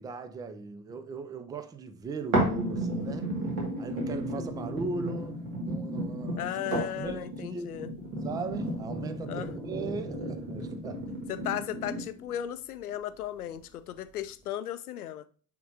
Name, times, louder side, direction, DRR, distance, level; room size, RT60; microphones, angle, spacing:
voice 1, 0.0-3.3 3.8-7.8 8.2-11.1, right 3 dB, 10° right, 0.4 m, -38 dB
sound 1, 2.3-12.3 12.9-13.0, right 1 dB, 60° right, 2.4 m, -33 dB
voice 2, 6.4-7.9 9.3-9.5 11.3-15.2, left 11 dB, 75° left, 0.6 m, -36 dB
9.4 x 3.7 x 2.8 m
figure-of-eight pair, 65°, 45 cm